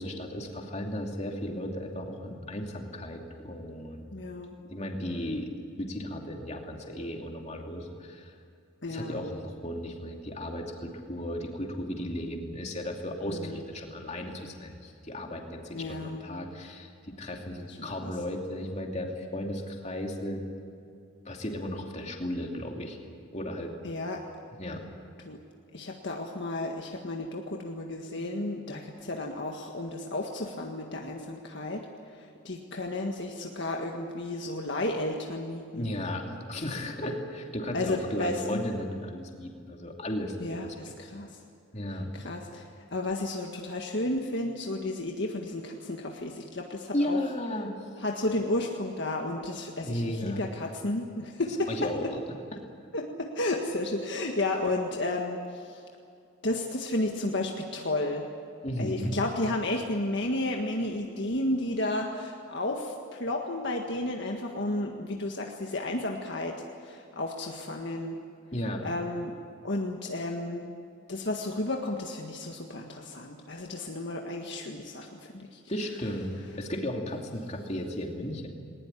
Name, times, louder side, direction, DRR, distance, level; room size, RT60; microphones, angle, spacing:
voice 1, 0.0-4.1 4.7-5.5 5.8-8.4 8.9-20.4 21.2-23.0 23.3-23.7 24.5-24.8 35.7-40.8 41.7-42.2 46.9-47.7 49.8-50.5 51.7-52.2 58.6-59.2 68.5-68.8 75.7-76.3 76.6-78.5, left 1 dB, 30° left, 2 dB, 2.7 m, -35 dB
voice 2, 4.1-4.5 8.8-9.3 13.2-13.6 15.7-16.2 17.6-17.8 18.0-18.1 23.8-24.2 25.2-25.4 25.7-35.9 37.7-38.6 40.4-41.4 42.1-47.2 48.0-52.1 52.9-55.8 56.4-58.3 58.8-68.2 68.8-69.3 69.6-70.7 71.1-75.6, left 2 dB, 55° left, 1 dB, 1.7 m, -32 dB
20.5 x 19.5 x 10.0 m, 2.4 s
head